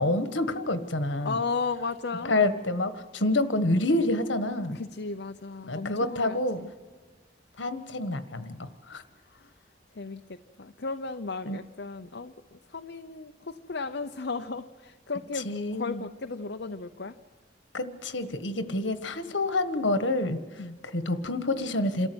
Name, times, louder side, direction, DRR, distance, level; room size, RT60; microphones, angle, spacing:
voice 1, 0.0-1.4 2.3-4.8 5.7-6.6 7.6-9.0 11.4-11.6 15.4-16.0 17.7-20.4 20.9-22.1, left 2 dB, 85° left, 10 dB, 1.5 m, -28 dB
voice 2, 1.2-2.3 4.7-6.7 9.2-9.6 9.9-17.2 20.6-20.8, left 4 dB, 65° left, 6 dB, 0.8 m, -35 dB
27.5 x 14.0 x 8.0 m, 1.4 s
head